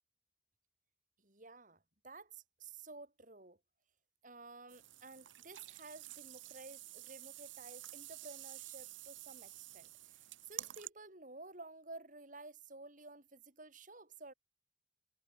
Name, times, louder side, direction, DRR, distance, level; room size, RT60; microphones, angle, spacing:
voice 1, 1.2-3.6 4.2-14.3, right 3 dB, 40° right, 4.4 m, -53 dB
sound 1, 4.7-10.9, right 16 dB, 75° right, 0.8 m, -50 dB
head